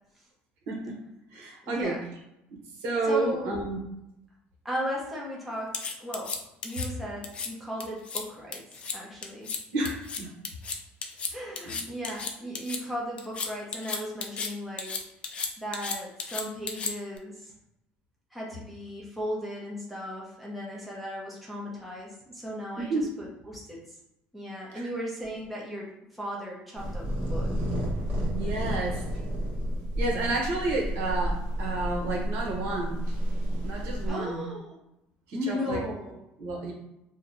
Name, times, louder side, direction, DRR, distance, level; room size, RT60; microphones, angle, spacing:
voice 1, 0.7-1.0 1.3-2.0 2.8-3.8 9.7-10.3 11.6-11.8 22.8-23.1 24.7-24.9 28.3-29.1 30.0-33.1 33.6-34.4 35.3-35.8 36.4-36.7, right 2 dB, 70° right, -1 dB, 1.0 m, -30 dB
voice 2, 1.6-2.0 3.0-3.5 4.6-6.3 6.6-8.6 8.9-9.5 11.3-14.9 15.6-17.5 18.3-23.8 24.3-27.5 34.1-34.8 35.3-36.2, equal, ahead, -5 dB, 0.7 m, -36 dB
sound 1, 5.7-6.9 7.2-7.5 7.8-8.2 8.5-9.0 9.2-9.6 9.8-12.8 13.2-14.5 14.8-17.2, left 5 dB, 30° left, 0.4 m, -34 dB
sound 2, 26.7-34.1, equal, 40° right, 1.0 m, -31 dB
2.8 x 2.2 x 3.8 m, 0.87 s
cardioid pair, 155°, 4 cm